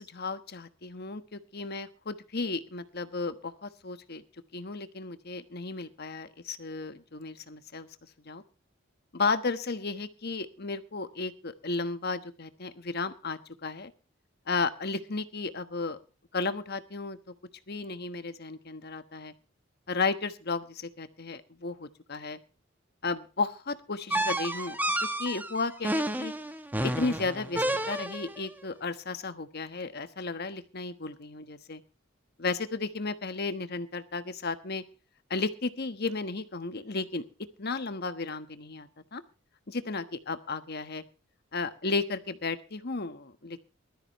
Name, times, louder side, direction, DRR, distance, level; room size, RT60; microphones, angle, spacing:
voice 1, 0.0-4.2 4.5-7.9 8.2-8.4 9.1-13.9 14.5-16.0 16.3-17.2 17.7-19.3 19.9-22.4 23.0-26.3 26.8-31.8 32.4-34.8 35.3-37.2 37.6-39.2 39.7-41.0 41.5-43.6, left 3 dB, 55° left, 10 dB, 1.3 m, -34 dB
sound 1, 24.1-28.4, right 1 dB, 10° right, 1.2 m, -31 dB
20.5 x 13.0 x 3.1 m, 0.33 s
head